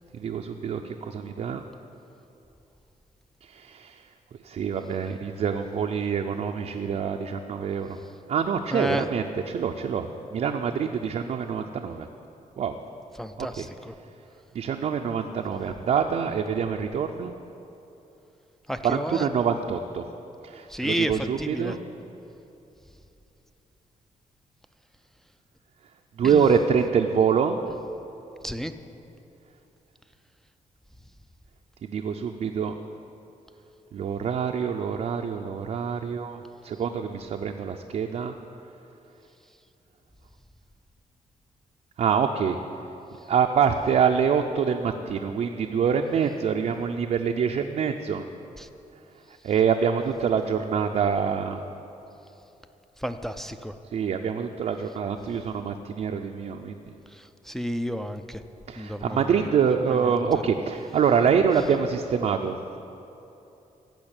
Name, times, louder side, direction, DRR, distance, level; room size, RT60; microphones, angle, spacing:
voice 1, 0.1-1.6 3.5-4.0 4.4-8.0 8.3-12.1 12.6-12.8 13.4-13.7 14.5-17.3 18.8-20.0 20.4-21.8 26.2-27.6 31.8-32.8 33.9-38.3 42.0-42.6 43.3-48.2 49.4-51.6 53.9-56.8 58.7-62.8, right 7 dB, 55° right, 3 dB, 0.5 m, -25 dB
voice 2, 8.7-9.1 13.2-13.9 18.7-19.3 20.7-21.8 26.2-26.5 28.4-28.7 48.6-48.7 53.0-53.7 57.1-58.4 58.8-60.4, equal, 5° left, 7 dB, 0.4 m, -32 dB
15.5 x 5.2 x 8.8 m, 2.9 s
wide cardioid pair, 165°, 14 cm